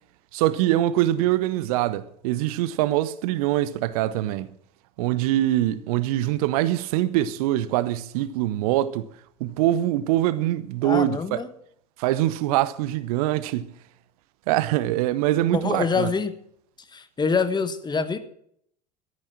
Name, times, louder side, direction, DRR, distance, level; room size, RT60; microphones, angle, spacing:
voice 1, 0.3-4.5 5.0-9.1 9.4-11.4 12.0-13.7 14.5-16.1, right 14 dB, 60° right, 0.8 m, -23 dB
voice 2, 10.8-11.5 15.5-16.3 16.9-18.2, left 5 dB, 20° left, 1.4 m, -25 dB
13.0 x 10.0 x 7.4 m
figure-of-eight pair, 70°, 21 cm